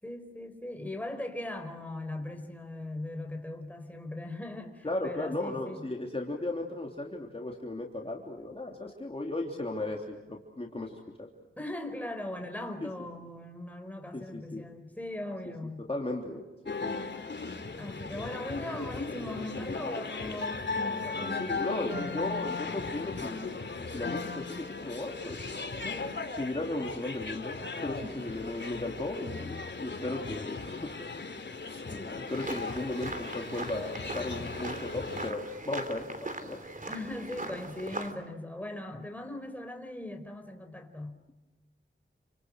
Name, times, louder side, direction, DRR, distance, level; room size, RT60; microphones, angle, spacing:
voice 1, 0.0-5.8 11.6-15.9 17.8-21.4 21.7-22.5 36.9-41.2, left 1 dB, 5° left, 5 dB, 4.5 m, -39 dB
voice 2, 4.8-11.3 12.8-12.9 14.1-14.6 15.9-16.9 21.2-23.5 23.8-25.6 25.8-30.9 31.7-36.6, left 2 dB, 30° left, 0 dB, 3.2 m, -36 dB
sound 1, 16.7-35.3, left 4 dB, 60° left, 2.9 m, -37 dB
sound 2, 32.3-38.1, right 2 dB, 40° right, 3.3 m, -40 dB
29.5 x 27.0 x 6.4 m, 1.1 s
wide cardioid pair, 65°, 21 cm